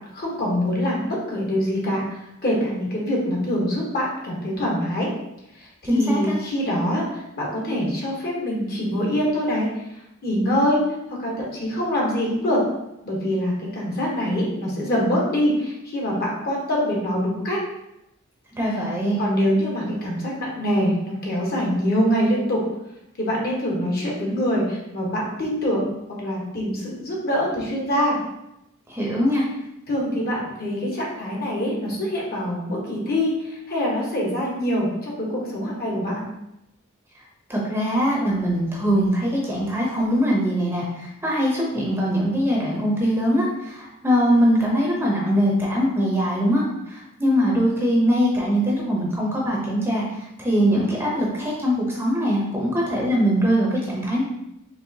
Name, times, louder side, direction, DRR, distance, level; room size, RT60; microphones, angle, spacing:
voice 1, 0.1-5.1 5.6-5.7 5.9-7.1 7.4-9.7 10.2-10.8 11.1-12.6 13.0-17.6 19.2-22.6 23.2-28.2 29.9-36.3, equal, 50° left, -3 dB, 1.1 m, -24 dB
voice 2, 5.8-6.3 18.5-19.2 28.9-29.4 37.5-54.2, equal, 10° right, -3 dB, 0.7 m, -22 dB
4.6 x 3.0 x 2.8 m, 0.86 s
head